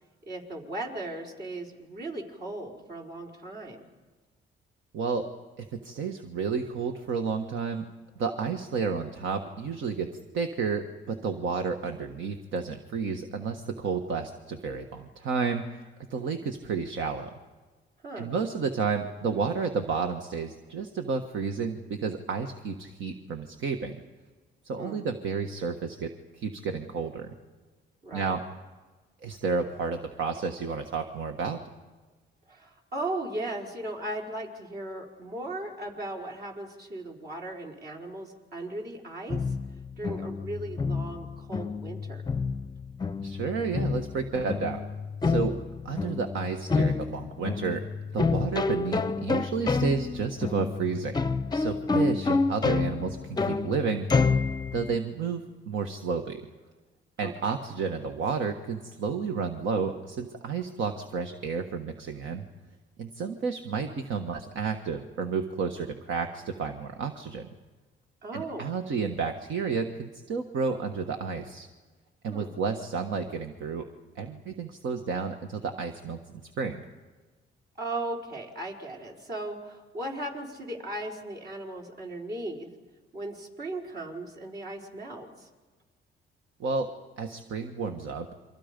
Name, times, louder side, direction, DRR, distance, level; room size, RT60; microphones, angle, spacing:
voice 1, 0.2-3.8 18.0-18.3 24.8-25.0 28.0-28.4 32.5-39.4 40.0-42.2 57.2-57.5 68.2-68.7 72.3-72.5 77.8-82.7 83.1-85.5, right 2 dB, 55° right, 0 dB, 4.8 m, -37 dB
voice 2, 5.6-7.9 8.2-10.1 10.3-17.3 18.2-24.0 24.6-27.3 28.1-28.4 29.2-31.6 43.2-44.8 45.2-45.5 45.8-47.8 48.1-51.2 51.5-54.1 54.7-55.4 55.7-56.4 57.2-62.4 63.0-67.5 68.3-71.7 72.2-73.8 74.1-76.8 86.6-86.9 87.2-88.3, right 5 dB, 75° right, 6 dB, 1.4 m, -31 dB
sound 1, 39.3-55.0, left 4 dB, 20° left, 0.6 m, -29 dB
28.5 x 24.5 x 5.3 m, 1.3 s
cardioid pair, 90°, 20 cm